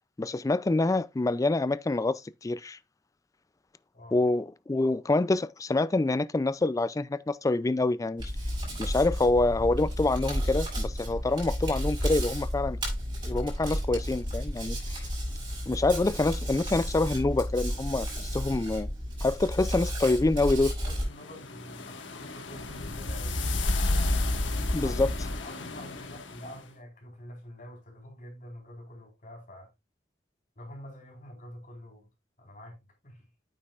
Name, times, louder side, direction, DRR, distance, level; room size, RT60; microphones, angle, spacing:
voice 1, 0.2-2.8 4.1-8.3 8.8-12.8 13.2-15.1 15.7-18.9 19.2-20.7 24.7-25.1, left 2 dB, 20° left, 0.4 m, -26 dB
Hands, 8.2-21.0, equal, 25° right, 6.6 m, -32 dB
voice 2, 20.8-24.2 24.8-29.7 30.6-32.1 32.4-32.8 33.0-33.3, left 1 dB, 45° left, 4.2 m, -47 dB
sound 1, 21.2-26.5, left 2 dB, 85° left, 1.6 m, -30 dB
9.5 x 8.5 x 2.4 m
head